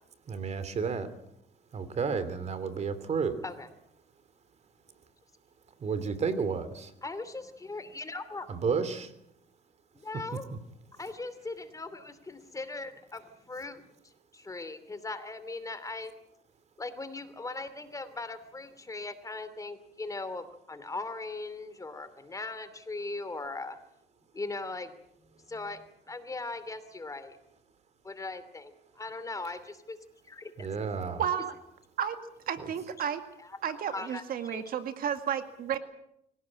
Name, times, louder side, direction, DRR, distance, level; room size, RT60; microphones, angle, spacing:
voice 1, 0.3-1.1 1.7-3.4 5.8-6.9 8.5-9.1 30.6-31.2, right 5 dB, 40° right, 13 dB, 2.9 m, -31 dB
voice 2, 7.0-8.6 9.9-10.4 11.0-13.8 14.3-16.1 16.8-23.8 24.3-24.9 25.5-27.4 28.0-30.0 30.3-30.5 33.9-34.6, left 3 dB, 20° left, 12 dB, 2.8 m, -39 dB
voice 3, 31.2-31.6 32.0-32.2 32.5-33.2 33.6-35.8, right 8 dB, 60° right, 8 dB, 2.0 m, -32 dB
25.0 x 17.5 x 8.7 m, 0.77 s
cardioid pair, 110°, 17 cm